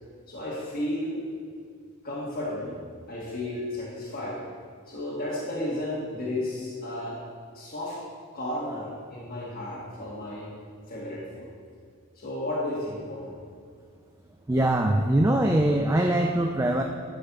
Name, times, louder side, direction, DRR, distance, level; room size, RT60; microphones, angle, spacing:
voice 1, 0.3-1.2 2.0-2.8 3.1-4.4 4.9-7.2 7.5-8.0 8.3-10.5 10.9-11.5 12.1-13.3, left 1 dB, 40° left, -7 dB, 1.6 m, -33 dB
voice 2, 14.5-16.8, right 1 dB, 15° right, 3 dB, 0.3 m, -22 dB
11.5 x 4.3 x 5.9 m, 2.1 s
head